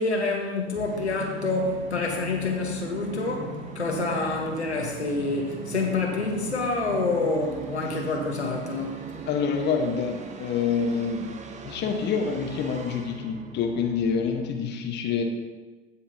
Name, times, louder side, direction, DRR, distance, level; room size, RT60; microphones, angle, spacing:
voice 1, 0.0-9.0, left 3 dB, 85° left, 1 dB, 1.4 m, -27 dB
Musical instrument, 0.7-14.4, right 4 dB, 20° right, 0.8 m, -39 dB
voice 2, 9.3-11.3 11.6-15.2, left 6 dB, 35° left, 3 dB, 1.3 m, -27 dB
15.5 x 5.7 x 2.9 m, 1.3 s
figure-of-eight pair, 80°, 32 cm